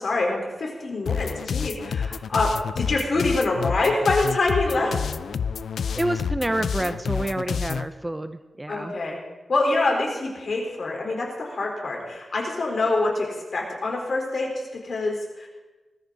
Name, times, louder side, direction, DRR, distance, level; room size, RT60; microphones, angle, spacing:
voice 1, 0.0-2.5 2.8-5.0 8.7-9.2 9.5-13.3 13.5-15.5, left 2 dB, 55° left, -1 dB, 4.3 m, -25 dB
sound 1, 1.1-7.9, left 6 dB, 85° left, 0.4 m, -28 dB
voice 2, 6.0-8.9, right 1 dB, 15° right, 10 dB, 0.6 m, -28 dB
19.5 x 13.5 x 4.1 m, 1.2 s
wide cardioid pair, 90°, 0 cm